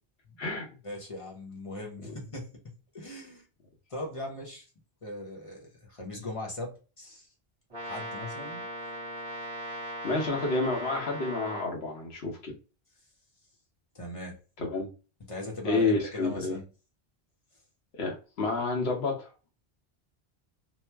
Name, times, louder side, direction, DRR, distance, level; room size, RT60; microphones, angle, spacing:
voice 1, 0.8-2.5 2.9-3.5 3.9-4.7 5.0-7.3 7.8-8.7 13.9-14.4 15.3-16.6, left 1 dB, 35° left, 0.8 m, -39 dB
Brass instrument, 7.7-11.8, equal, 30° right, 1.3 m, -39 dB
voice 2, 10.0-12.5 14.6-14.9 15.6-16.6 17.9-19.5, left 3 dB, 80° left, 1.1 m, -30 dB
2.9 x 2.1 x 3.2 m
omnidirectional pair, 1.1 m